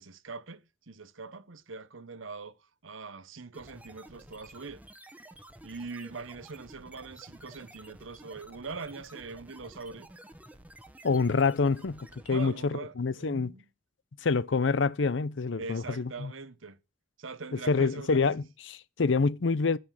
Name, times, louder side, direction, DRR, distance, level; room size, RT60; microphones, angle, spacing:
voice 1, 0.0-4.8 5.6-10.1 12.3-13.7 15.6-16.8 17.2-18.2, right 4 dB, 85° right, 1.0 m, -42 dB
sound 1, 3.5-12.7, right 1 dB, 10° right, 1.1 m, -52 dB
voice 2, 11.0-13.5 14.2-16.3 17.7-19.8, left 4 dB, 70° left, 0.6 m, -27 dB
9.6 x 8.6 x 7.4 m
head